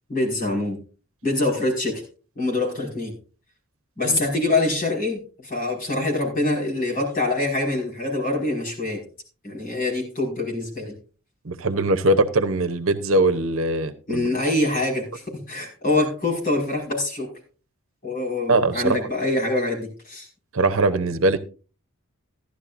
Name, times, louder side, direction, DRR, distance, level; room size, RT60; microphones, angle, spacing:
voice 1, 0.1-0.8 1.2-2.0 2.4-3.1 4.0-9.0 9.4-10.9 14.1-17.3 18.0-20.3, left 2 dB, 40° left, 5.3 m, -25 dB
voice 2, 11.4-14.3 18.5-19.0 20.5-21.4, right 2 dB, 70° right, 0.9 m, -21 dB
15.0 x 12.0 x 2.6 m
head